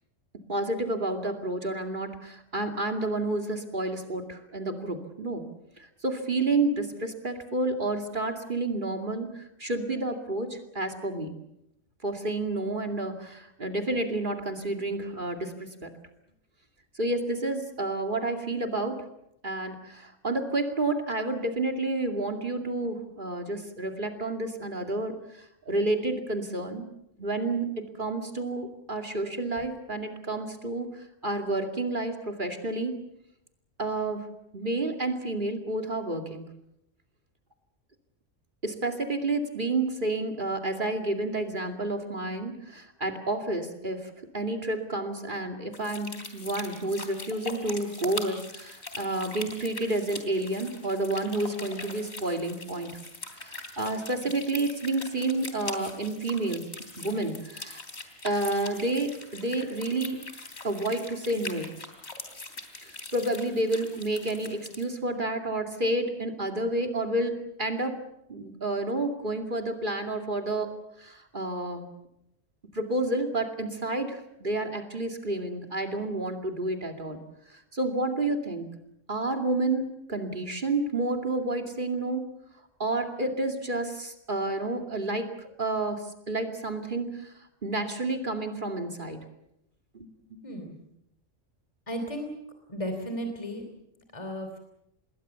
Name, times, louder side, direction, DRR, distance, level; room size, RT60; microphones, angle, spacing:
voice 1, 0.5-5.4 5.8-11.3 12.0-15.9 16.9-19.0 19.4-26.9 27.2-33.0 33.8-34.3 34.5-36.5 38.6-53.0 53.3-56.7 57.0-57.8 58.2-60.2 60.6-61.7 62.8-68.0 68.3-71.9 72.7-77.2 77.5-78.7 79.1-82.3 82.8-87.3 87.6-89.2 89.9-90.4, right 2 dB, 40° right, 4 dB, 2.7 m, -30 dB
sound 1, 45.7-64.8, left 2 dB, 55° left, 3.5 m, -42 dB
voice 2, 90.4-90.8 91.9-92.3 92.7-93.6 94.1-94.6, equal, 25° left, 5 dB, 3.1 m, -34 dB
27.0 x 21.0 x 7.0 m, 0.81 s
omnidirectional pair, 1.3 m